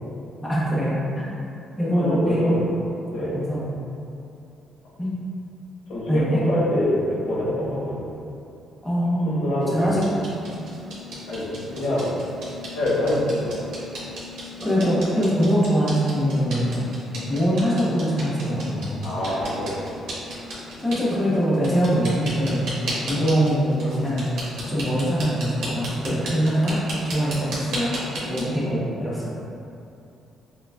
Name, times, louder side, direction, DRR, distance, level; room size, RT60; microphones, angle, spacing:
voice 1, 0.4-1.3 1.8-2.6 3.2-3.7 5.0-5.1 6.1-6.5 7.6-7.8 8.8-9.4 9.7-10.0 14.6-16.9 17.3-19.0 20.8-22.8 23.1-24.3 24.7-26.8 27.0-28.0 28.3-29.3, equal, 10° left, -8 dB, 0.6 m, -23 dB
voice 2, 2.0-2.6 3.1-3.4 5.9-8.2 9.2-10.0 11.3-12.2 12.7-13.7 17.3-17.4 19.0-19.9 20.7-20.8, left 1 dB, 65° left, -7 dB, 1.0 m, -26 dB
sound 1, 9.6-28.4, equal, 75° right, 1.2 m, -35 dB
6.2 x 2.2 x 2.2 m, 2.7 s
cardioid pair, 155°, 0 cm